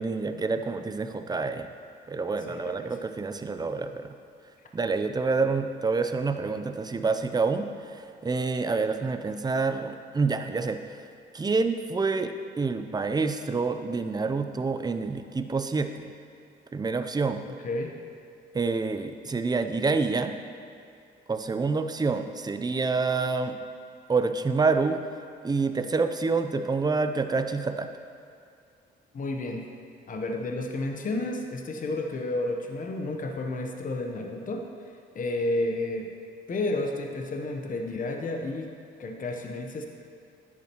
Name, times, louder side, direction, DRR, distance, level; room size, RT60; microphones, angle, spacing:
voice 1, 0.0-1.7 2.1-4.1 4.7-10.8 11.3-16.1 16.7-17.4 18.5-20.4 21.3-23.6 24.1-25.0 25.4-27.9, right 4 dB, 20° right, 8 dB, 0.5 m, -27 dB
voice 2, 2.5-2.9 17.6-18.0 29.1-29.7 30.1-34.7 35.1-36.1 36.5-38.7 39.0-39.9, left 2 dB, 40° left, 3 dB, 0.9 m, -31 dB
10.5 x 8.4 x 3.0 m, 2.4 s
cardioid pair, 90°, 20 cm